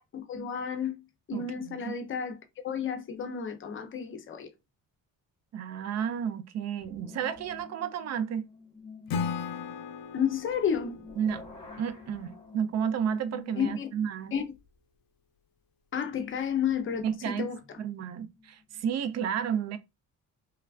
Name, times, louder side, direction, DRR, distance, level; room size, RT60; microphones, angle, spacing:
voice 1, 0.1-1.0 1.3-4.5 10.1-11.0 13.6-13.9 14.3-14.5 15.9-17.6, left 7 dB, 35° left, 0.5 m, -31 dB
voice 2, 1.3-1.9 5.5-8.5 11.2-11.4 11.8-14.3 17.0-17.5 17.8-19.8, right 8 dB, 50° right, 0.4 m, -32 dB
sound 1, 6.8-9.5 10.5-14.1 14.7-14.8 16.5-19.1, left 4 dB, 15° left, 1.1 m, -49 dB
Acoustic guitar / Strum, 9.1-12.3, left 6 dB, 85° left, 0.5 m, -37 dB
3.2 x 2.3 x 2.3 m
cardioid pair, 135°, 34 cm